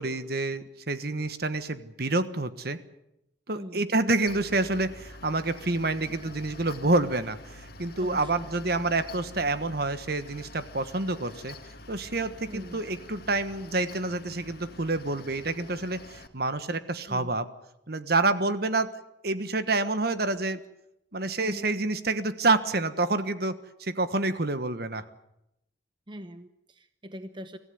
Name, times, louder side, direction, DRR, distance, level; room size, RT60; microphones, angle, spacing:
voice 1, 0.0-2.8 3.5-11.5 11.9-17.5 17.9-18.9 19.2-20.6 21.1-25.0, right 2 dB, 55° right, 11 dB, 1.4 m, -28 dB
voice 2, 3.5-3.9 6.1-6.3 8.0-8.5 12.5-12.8 17.1-17.3 21.4-21.7 26.1-27.6, equal, 25° right, 10 dB, 0.9 m, -42 dB
Mechanical fan, 4.3-16.3, left 2 dB, 55° left, 2.0 m, -47 dB
25.0 x 15.5 x 9.7 m, 0.84 s
head